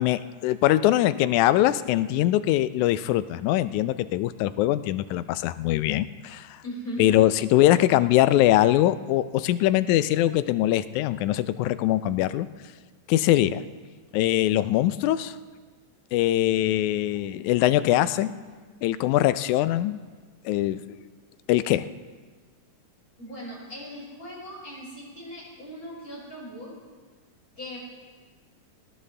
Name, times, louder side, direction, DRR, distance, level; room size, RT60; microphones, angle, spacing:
voice 1, 0.0-6.6 7.0-12.5 13.1-13.6 14.1-15.4 16.1-18.3 18.8-20.0 20.5-20.8 21.5-21.9, left 14 dB, 85° left, 14 dB, 2.0 m, -22 dB
voice 2, 6.6-7.2 17.9-18.7 23.2-26.7 27.6-27.8, equal, 15° left, -7 dB, 5.9 m, -39 dB
19.0 x 16.5 x 3.3 m, 1.5 s
omnidirectional pair, 3.4 m